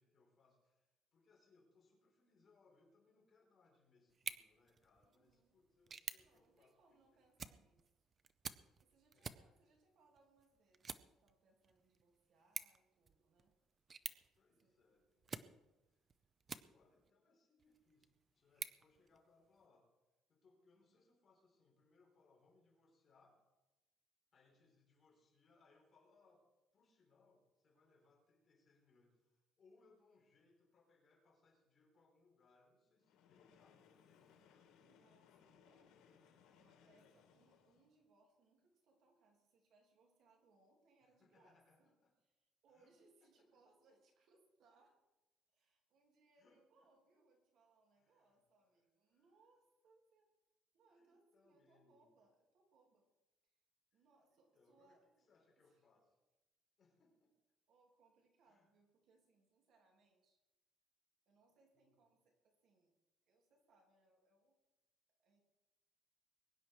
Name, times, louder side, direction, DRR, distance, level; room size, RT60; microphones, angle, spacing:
voice 1, 0.0-7.2 9.1-9.5 14.3-15.5 15.9-16.1 16.5-19.9 20.3-23.5 24.3-26.5 26.7-34.7 41.1-42.1 42.7-42.9 43.2-43.6 46.4-46.9 47.9-49.3 50.9-52.1 53.9-54.0 54.3-56.2 56.8-57.3 58.4-58.7 61.7-62.0, left 3 dB, 30° left, -1 dB, 4.6 m, -73 dB
sound 1, 4.1-17.1 17.6-19.7, right 5 dB, 25° right, 0.6 m, -53 dB
voice 2, 5.0-5.6 6.2-7.8 8.8-13.5 14.6-14.8 34.8-36.0 36.6-41.9 42.2-45.0 45.5-50.3 50.7-53.0 53.4-53.6 53.9-55.3 55.6-55.8 57.7-60.4 61.2-62.9 63.2-64.6 65.2-65.4, right 3 dB, 55° right, 1 dB, 3.2 m, -74 dB
Train, 33.0-38.0, left 7 dB, 80° left, 2.5 m, -68 dB
22.0 x 10.0 x 4.8 m, 1.1 s
cardioid pair, 165°, 0 cm